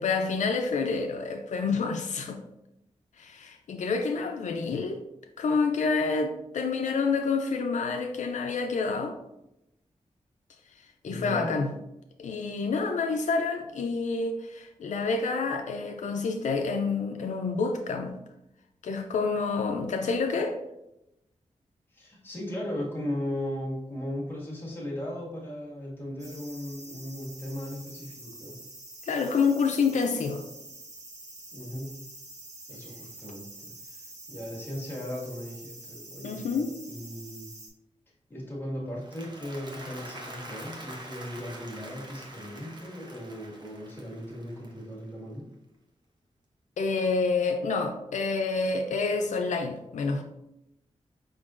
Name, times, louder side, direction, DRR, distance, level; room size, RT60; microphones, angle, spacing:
voice 1, 0.0-2.4 3.2-5.0 5.4-9.2 11.0-11.7 12.2-18.2 18.8-20.6 29.1-30.4 36.2-36.7 46.8-50.2, left 4 dB, 85° left, 0.4 m, -28 dB
voice 2, 11.0-11.7 21.9-28.6 31.5-32.0 32.7-37.5 38.3-45.5, left 1 dB, 20° left, 1.6 m, -37 dB
sound 1, 26.2-37.7, right 1 dB, 75° right, 1.2 m, -46 dB
Applause, 38.9-45.2, right 1 dB, 40° right, 0.9 m, -45 dB
5.3 x 3.8 x 2.5 m
wide cardioid pair, 105°, 12 cm